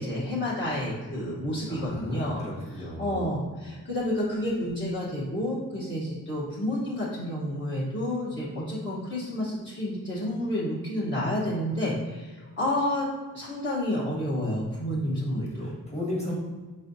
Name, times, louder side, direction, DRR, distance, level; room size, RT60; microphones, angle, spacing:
voice 1, 0.0-2.4 2.8-13.1 13.3-15.7 16.2-16.4, left 1 dB, 35° left, -9 dB, 1.0 m, -30 dB
voice 2, 1.2-3.4 14.9-15.1 15.6-16.4, left 1 dB, 20° left, -4 dB, 1.3 m, -37 dB
5.5 x 3.2 x 2.6 m, 1.3 s
wide cardioid pair, 95°, 35 cm